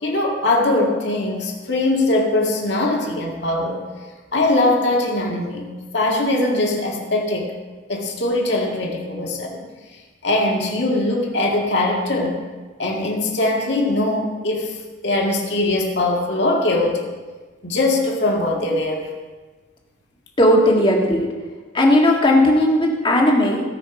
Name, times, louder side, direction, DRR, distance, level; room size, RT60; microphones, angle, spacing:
voice 1, 0.0-3.8 4.3-5.7 5.9-7.5 7.9-9.7 10.2-12.4 12.8-14.8 15.0-17.1 17.6-19.1, left 2 dB, 60° left, -1 dB, 2.0 m, -21 dB
voice 2, 20.4-21.3 21.7-23.6, left 1 dB, 25° left, -1 dB, 1.7 m, -16 dB
17.5 x 6.0 x 4.9 m, 1.4 s
head